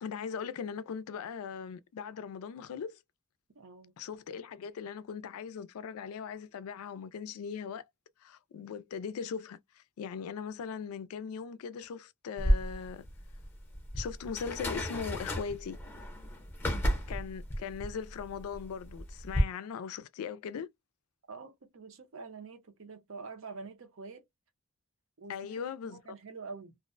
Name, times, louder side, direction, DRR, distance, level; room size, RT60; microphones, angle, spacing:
voice 1, 0.0-3.0 4.0-7.8 8.2-13.1 14.0-15.8 17.1-20.7 25.3-26.0, left 6 dB, 85° left, 0.3 m, -39 dB
voice 2, 3.5-3.9 21.3-24.2 25.2-26.8, right 4 dB, 65° right, 0.6 m, -46 dB
sound 1, 12.4-19.4, equal, 10° left, 0.6 m, -33 dB
2.4 x 2.0 x 2.4 m
head